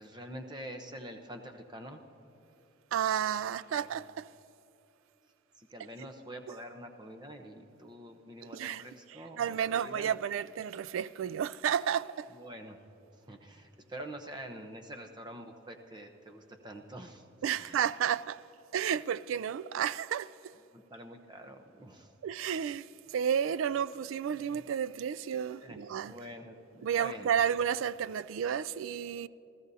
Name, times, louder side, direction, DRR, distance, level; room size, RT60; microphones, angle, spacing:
voice 1, 0.0-2.0 3.7-3.9 5.6-10.2 12.3-12.8 13.1-17.2 17.5-17.9 20.7-22.1 24.5-24.6 25.5-25.8 26.1-27.3, right 1 dB, 20° right, 0.8 m, -46 dB
voice 2, 2.9-4.3 6.5-6.6 8.5-8.8 9.4-12.3 17.4-18.4 18.7-20.5 22.2-26.2 26.8-29.3, right 8 dB, 80° right, 0.3 m, -32 dB
27.5 x 14.5 x 2.7 m
head